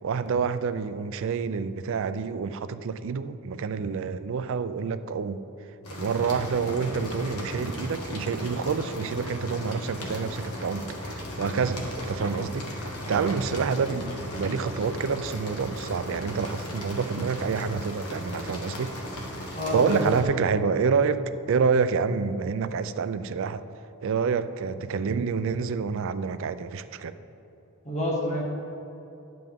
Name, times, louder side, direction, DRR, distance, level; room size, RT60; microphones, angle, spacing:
voice 1, 0.0-5.5 6.0-18.9 19.7-23.6 24.0-27.1, right 5 dB, 60° right, 12 dB, 0.4 m, -28 dB
sound 1, 5.8-20.2, equal, 85° left, 1.6 m, -36 dB
voice 2, 19.5-20.3 27.8-28.4, equal, 30° left, -3 dB, 1.7 m, -28 dB
11.0 x 7.7 x 3.6 m, 3.0 s
head